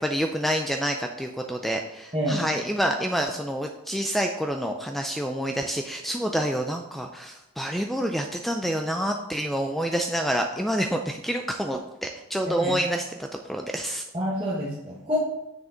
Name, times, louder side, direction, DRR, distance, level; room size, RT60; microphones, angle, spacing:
voice 1, 0.0-14.0, equal, ahead, 4 dB, 0.3 m, -28 dB
voice 2, 2.1-2.4 12.6-12.7 14.1-15.2, equal, 25° right, -6 dB, 1.2 m, -27 dB
7.3 x 6.4 x 3.9 m, 1.0 s
head